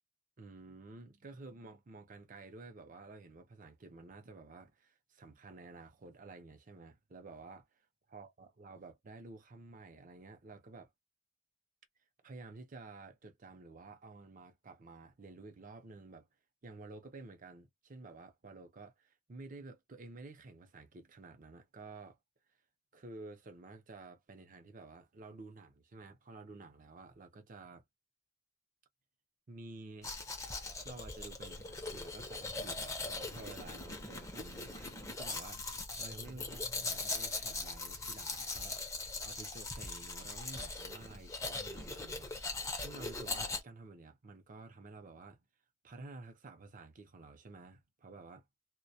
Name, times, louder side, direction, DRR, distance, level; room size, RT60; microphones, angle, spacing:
voice 1, 0.4-7.7 8.1-10.9 12.2-16.3 16.6-22.2 22.9-27.8 29.5-30.1 30.8-38.8 39.2-45.4 45.8-48.4, right 3 dB, 40° right, 0.6 m, -52 dB
Domestic sounds home sounds, 30.0-43.6, left 3 dB, 15° left, 0.5 m, -40 dB
2.1 x 2.1 x 2.7 m
head